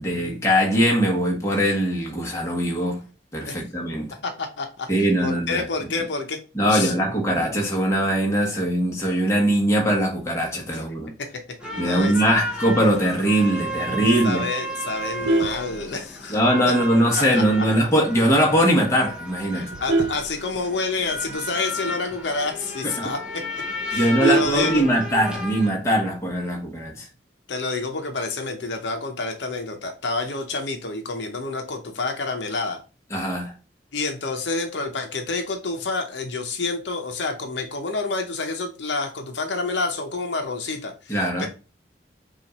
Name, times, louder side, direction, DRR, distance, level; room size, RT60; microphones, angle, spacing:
voice 1, 0.0-3.0 3.3-4.1 4.9-5.6 6.5-11.1 11.8-14.4 16.3-19.7 22.8-23.1 23.9-27.1 33.1-33.5 41.1-41.5, equal, 15° left, 1.1 m, -21 dB
voice 2, 4.2-6.4 6.7-6.9 10.7-10.8 11.3-12.4 14.2-16.4 17.3-17.4 19.5-23.4 23.9-24.9 27.5-32.8 33.9-41.5, left 3 dB, 75° left, 0.7 m, -28 dB
sound 1, 11.6-25.7, left 1 dB, 5° right, 0.8 m, -33 dB
Vehicle horn car horn honking, 15.0-16.5 16.9-17.2 17.5-17.6 18.0-18.1 18.4-18.8 19.3-21.1 21.5-21.6 21.9-22.0 22.4-22.5 22.9-23.0 23.2-25.3 26.4-26.9, right 2 dB, 85° right, 0.4 m, -25 dB
5.6 x 2.5 x 3.0 m
head